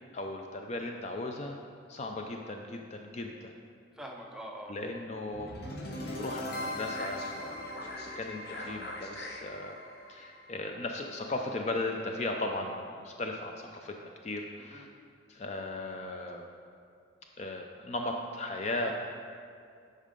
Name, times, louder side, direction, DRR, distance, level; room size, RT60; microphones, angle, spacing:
voice 1, 0.1-1.6 1.9-3.5 4.7-5.5 5.8-7.8 8.2-9.8 10.1-14.0 14.2-14.9 15.3-16.5 17.4-18.9, left 2 dB, 35° left, 3 dB, 0.4 m, -37 dB
voice 2, 4.0-4.7 14.6-14.9 18.8-18.9, right 1 dB, 5° right, -1 dB, 0.6 m, -43 dB
sound 1, 5.3-11.4, left 1 dB, 50° left, 0.8 m, -40 dB
8.4 x 5.4 x 3.8 m, 2.4 s
head